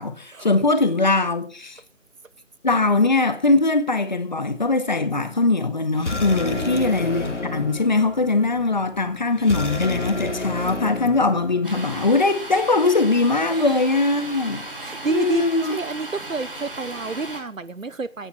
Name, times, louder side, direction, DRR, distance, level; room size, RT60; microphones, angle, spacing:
voice 1, 0.0-1.8 2.6-14.6 15.1-15.7, left 3 dB, 35° left, 1.8 m, -21 dB
sound 1, 5.9-12.0, left 2 dB, 65° left, 2.7 m, -30 dB
voice 2, 6.5-6.8 13.5-13.7 14.8-18.3, right 3 dB, 85° right, 1.0 m, -29 dB
Domestic sounds home sounds, 11.6-17.4, right 2 dB, 45° right, 6.9 m, -36 dB
16.5 x 10.0 x 5.7 m
figure-of-eight pair, 160°, 38 cm